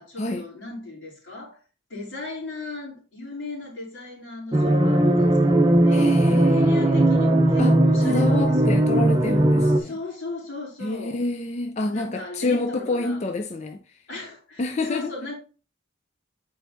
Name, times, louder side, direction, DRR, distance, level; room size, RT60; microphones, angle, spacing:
voice 1, 0.0-1.6 1.9-8.7 9.6-11.2 11.9-13.2 14.1-15.3, left 2 dB, 80° left, 3.0 m, -37 dB
sound 1, 4.5-9.8, right 1 dB, 25° right, 0.6 m, -18 dB
voice 2, 5.9-7.1 7.6-10.0 10.8-14.0 14.6-15.1, left 2 dB, 35° left, 0.4 m, -28 dB
8.5 x 4.5 x 2.6 m
head